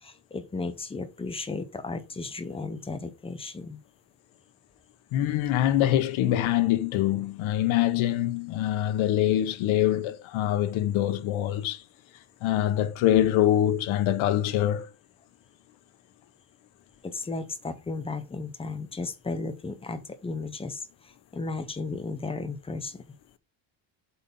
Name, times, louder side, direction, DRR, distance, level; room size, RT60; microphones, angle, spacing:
voice 1, 0.0-3.8 17.0-23.0, left 3 dB, 10° left, 0.6 m, -35 dB
voice 2, 5.1-11.8 12.4-14.9, left 12 dB, 85° left, 1.1 m, -24 dB
8.1 x 4.1 x 5.3 m
cardioid pair, 180°, 47 cm